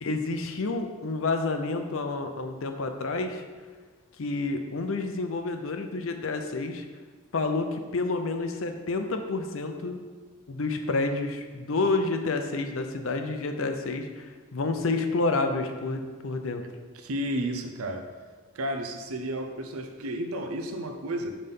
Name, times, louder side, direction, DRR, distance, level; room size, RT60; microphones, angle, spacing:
voice 1, 0.0-3.4 4.2-6.9 7.3-10.0 10.5-16.6, left 3 dB, 70° left, 6 dB, 0.6 m, -29 dB
voice 2, 16.9-18.1 18.5-21.4, right 1 dB, 90° right, 5 dB, 0.6 m, -32 dB
5.5 x 4.1 x 5.4 m, 1.5 s
head